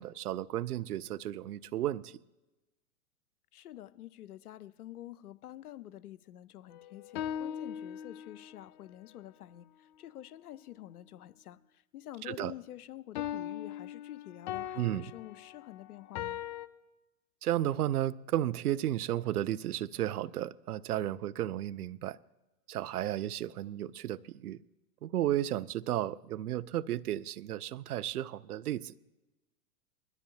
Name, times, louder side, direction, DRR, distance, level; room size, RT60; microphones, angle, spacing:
voice 1, 0.0-2.1 12.3-12.5 14.8-15.1 17.4-22.2 22.7-24.6 25.0-28.9, right 13 dB, 85° right, 0.5 m, -33 dB
voice 2, 3.5-16.4, left 13 dB, 85° left, 0.6 m, -48 dB
sound 1, 6.7-8.6 13.2-16.7, left 10 dB, 35° left, 0.4 m, -39 dB
20.5 x 13.0 x 2.8 m
hypercardioid pair, 115°, 44 cm